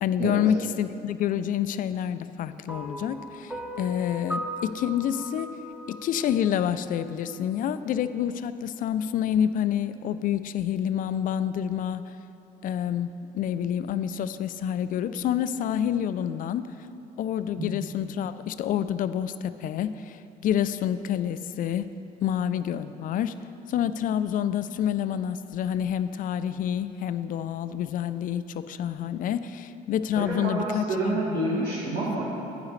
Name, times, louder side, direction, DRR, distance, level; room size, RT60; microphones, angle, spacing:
voice 1, 0.0-5.5 5.9-12.1 12.6-16.7 17.2-21.9 22.2-23.3 23.7-31.4, left 9 dB, 55° left, 12 dB, 0.4 m, -28 dB
sound 1, 2.7-7.0, left 1 dB, 5° right, 0.8 m, -37 dB
voice 2, 30.2-32.2, right 2 dB, 55° right, -9 dB, 2.0 m, -28 dB
9.3 x 9.0 x 3.2 m, 2.8 s
cardioid pair, 110°, 17 cm